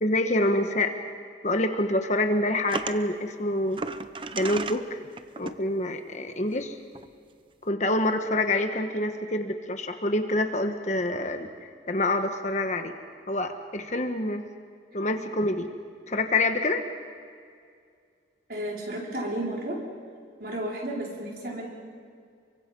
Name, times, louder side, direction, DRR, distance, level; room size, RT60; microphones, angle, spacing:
voice 1, 0.0-0.9 1.4-3.8 4.3-5.0 5.4-6.8 7.6-11.5 11.9-12.9 13.3-14.4 14.9-15.7 16.1-16.8, left 1 dB, 40° left, 6 dB, 1.4 m, -26 dB
sound 1, 2.7-3.0 3.7-4.8 5.2-5.5 6.6-6.7 6.9-7.1, right 3 dB, 30° right, 0.7 m, -34 dB
voice 2, 18.5-19.8 20.4-21.7, right 1 dB, 55° right, -2 dB, 5.3 m, -32 dB
29.0 x 24.0 x 5.5 m, 2.2 s
head